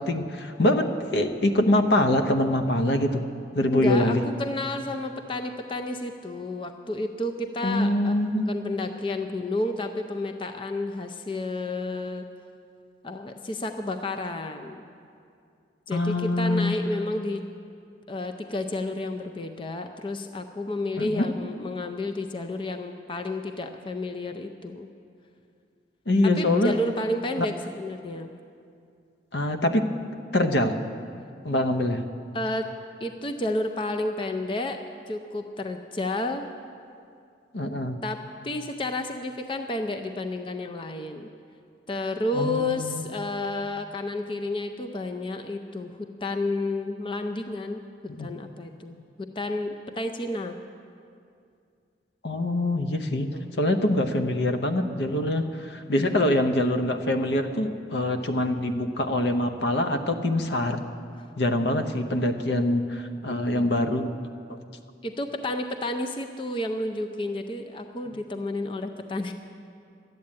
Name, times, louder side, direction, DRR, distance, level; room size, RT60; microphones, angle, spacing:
voice 1, 0.0-3.2 3.5-4.2 7.6-8.5 15.9-16.7 21.0-21.3 26.1-26.8 27.4-27.5 29.3-29.8 30.3-30.8 31.4-32.0 37.5-38.0 42.3-43.0 48.1-48.3 52.2-53.3 53.6-60.8 61.4-64.1 64.5-64.6, left 1 dB, 70° left, 7 dB, 0.8 m, -24 dB
voice 2, 3.7-8.1 8.5-12.2 13.0-14.9 15.9-17.4 18.1-24.9 26.2-28.3 32.3-32.7 33.0-34.8 35.1-36.4 38.0-41.3 41.9-47.8 48.2-49.0 49.4-50.6 53.3-53.5 56.0-56.3 65.0-69.3, left 2 dB, 30° left, 6 dB, 0.5 m, -31 dB
12.0 x 8.9 x 8.6 m, 2.4 s
head